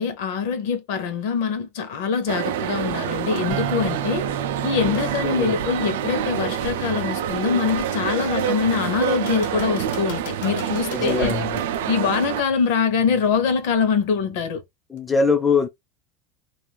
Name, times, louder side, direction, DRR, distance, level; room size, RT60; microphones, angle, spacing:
voice 1, 0.0-4.2 4.6-11.3 11.9-14.6, left 6 dB, 65° left, 0.7 m, -24 dB
sound 1, 2.3-12.4, right 9 dB, 80° right, 0.3 m, -27 dB
sound 2, 3.5-7.1, right 11 dB, 55° right, 0.8 m, -34 dB
sound 3, 4.9-5.2 5.8-5.9 9.1-11.3 15.0-15.1, left 6 dB, 85° left, 0.9 m, -41 dB
voice 2, 5.2-5.5 10.9-11.6 14.9-15.7, left 4 dB, 10° left, 0.3 m, -22 dB
2.4 x 2.4 x 3.3 m
supercardioid pair, 160°, 0 cm